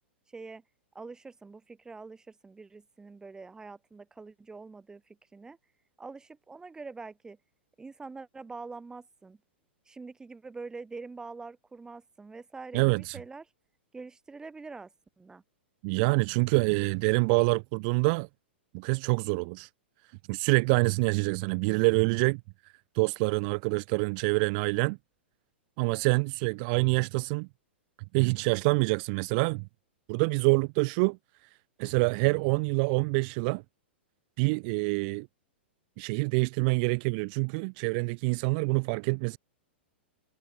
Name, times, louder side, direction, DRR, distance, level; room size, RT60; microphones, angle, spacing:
voice 1, 0.3-0.6 0.9-5.6 6.0-7.4 7.8-9.4 9.8-13.4 13.9-15.4, right 4 dB, 10° right, 3.5 m, -45 dB
voice 2, 12.7-13.2 15.8-18.3 18.7-19.7 20.3-22.4 22.9-25.0 25.8-27.5 28.1-29.7 30.1-31.2 31.8-33.6 34.4-35.3 36.0-39.4, right 33 dB, 45° right, 1.5 m, -26 dB
hypercardioid pair, 110°, 6 cm